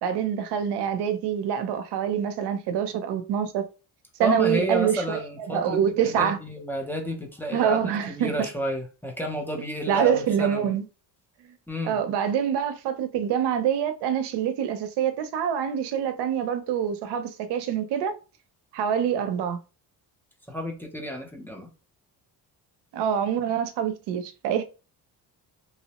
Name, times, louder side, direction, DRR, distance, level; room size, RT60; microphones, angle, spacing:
voice 1, 0.0-3.6 4.2-6.4 7.5-8.5 9.9-10.9 11.9-18.2 18.7-19.6 22.9-24.6, right 8 dB, 85° right, 0.6 m, -25 dB
voice 2, 4.2-10.7 11.7-12.0 20.5-21.7, equal, 5° left, 0.7 m, -31 dB
2.9 x 2.0 x 2.9 m
cardioid pair, 95°, 40 cm